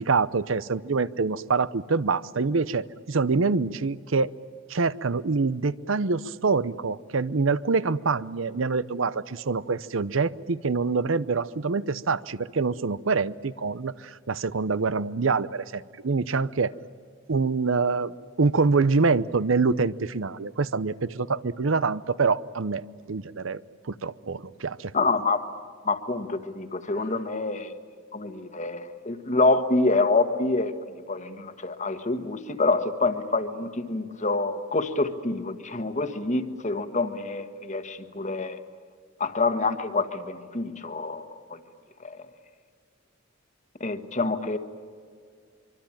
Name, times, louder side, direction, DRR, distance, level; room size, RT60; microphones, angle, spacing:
voice 1, 0.0-4.3 4.7-16.7 17.3-18.1 18.4-22.8 23.1-23.6 23.9-24.9, right 4 dB, 70° right, 17 dB, 0.7 m, -25 dB
voice 2, 24.9-25.4 25.8-27.8 28.1-30.7 31.1-38.6 39.2-41.6 42.0-42.3 43.8-44.6, left 3 dB, 35° left, 9 dB, 1.5 m, -27 dB
25.0 x 24.0 x 8.9 m, 2.1 s
head